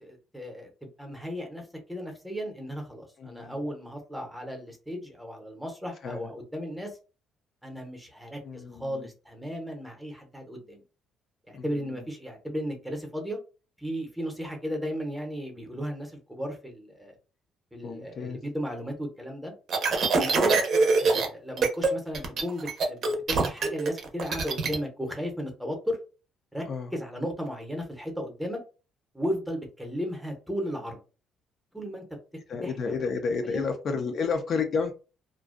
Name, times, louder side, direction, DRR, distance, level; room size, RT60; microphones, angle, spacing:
voice 1, 0.0-7.0 7.6-10.8 11.5-13.4 13.8-17.2 17.7-19.5 20.1-20.6 21.0-26.0 26.5-26.6 26.9-28.6 29.1-31.0 31.7-32.0 32.6-32.7 33.4-33.6, equal, ahead, 0.7 m, -35 dB
voice 2, 3.2-3.6 6.0-6.3 8.4-9.1 11.5-11.9 17.8-18.4 19.8-19.9 26.7-26.9 32.5-34.9, left 5 dB, 45° left, 0.4 m, -31 dB
sound 1, 19.7-21.3 21.6-21.9 22.1-24.8, right 4 dB, 50° right, 0.6 m, -24 dB
2.4 x 2.2 x 2.4 m
cardioid pair, 140°, 0 cm